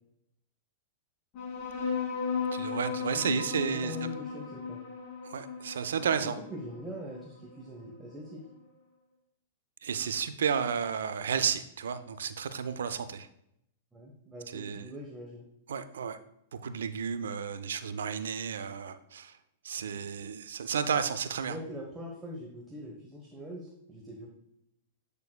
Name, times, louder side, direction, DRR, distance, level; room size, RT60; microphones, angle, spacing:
sound 1, 1.3-8.3, left 6 dB, 50° left, 2.3 m, -36 dB
voice 1, 2.5-4.0 5.2-6.4 9.8-13.3 14.5-14.9 15.7-16.2 16.5-19.3 19.6-21.6, right 7 dB, 75° right, 12 dB, 0.5 m, -32 dB
voice 2, 3.1-4.8 6.0-6.1 6.4-8.4 13.9-15.4 19.8-20.0 21.4-24.3, equal, 15° right, -2 dB, 1.1 m, -43 dB
8.3 x 6.6 x 2.2 m, 0.78 s
hypercardioid pair, 105°, 0 cm